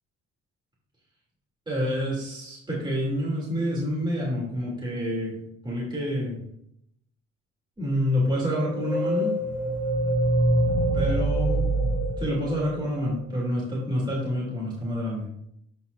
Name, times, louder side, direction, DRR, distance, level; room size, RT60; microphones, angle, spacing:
voice 1, 1.7-6.4 7.8-9.3 10.9-11.7 12.2-15.3, equal, 15° right, -5 dB, 3.0 m, -28 dB
sound 1, 8.5-13.1, right 1 dB, 90° left, 1.9 m, -25 dB
13.0 x 4.8 x 2.7 m, 0.73 s
cardioid pair, 90°, 30 cm